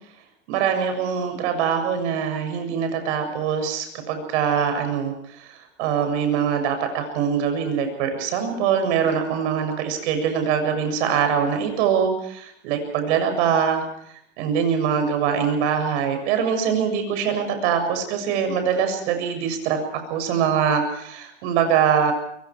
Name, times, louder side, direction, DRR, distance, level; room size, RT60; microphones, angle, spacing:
voice 1, 0.5-5.1 5.4-13.9 14.4-19.8 20.1-22.1, right 7 dB, 60° right, 7 dB, 7.3 m, -23 dB
25.0 x 23.5 x 4.8 m, 0.69 s
hypercardioid pair, 120°, 38 cm